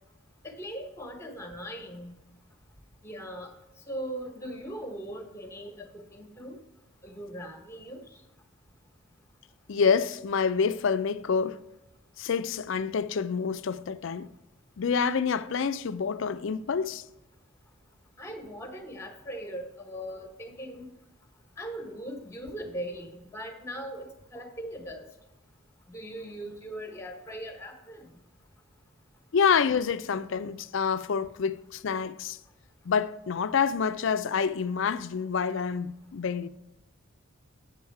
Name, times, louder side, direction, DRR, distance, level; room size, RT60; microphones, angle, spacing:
voice 1, 0.4-2.2 3.0-3.5 3.9-6.6 7.0-8.0 18.2-20.9 21.6-25.1 25.9-28.1, right 1 dB, 15° left, 1.2 m, -39 dB
voice 2, 9.7-11.6 12.2-14.3 14.8-17.0 29.3-32.4 32.9-36.5, left 6 dB, 60° left, 0.4 m, -27 dB
8.8 x 7.1 x 4.7 m
head